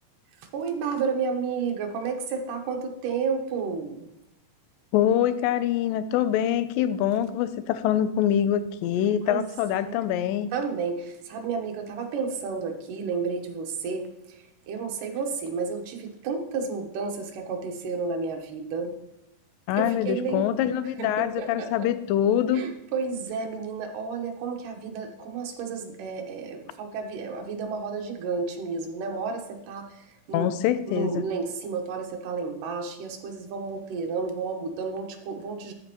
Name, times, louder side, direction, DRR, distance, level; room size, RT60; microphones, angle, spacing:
voice 1, 0.5-4.1 9.3-9.4 9.8-10.1 10.5-18.9 19.8-20.5 21.0-21.9 22.5-30.5 30.9-35.7, right 5 dB, 75° right, 3 dB, 2.6 m, -31 dB
voice 2, 4.9-10.5 19.7-22.6 30.3-31.3, left 10 dB, 85° left, 13 dB, 2.3 m, -24 dB
12.5 x 5.1 x 2.9 m, 0.90 s
omnidirectional pair, 4.0 m